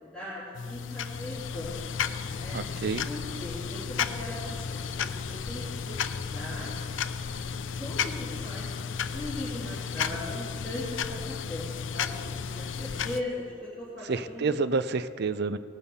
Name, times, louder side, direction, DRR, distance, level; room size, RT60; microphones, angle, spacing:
voice 1, 0.0-2.0 2.3-2.6 3.1-6.7 7.8-11.7 11.9-13.4 13.8-14.6, left 1 dB, 5° left, -12 dB, 3.1 m, -39 dB
sound 1, 0.5-13.2, left 6 dB, 85° left, 0.5 m, -33 dB
voice 2, 2.5-3.1 14.1-15.6, right 4 dB, 60° right, 13 dB, 0.5 m, -29 dB
19.0 x 7.0 x 5.6 m, 2.3 s
head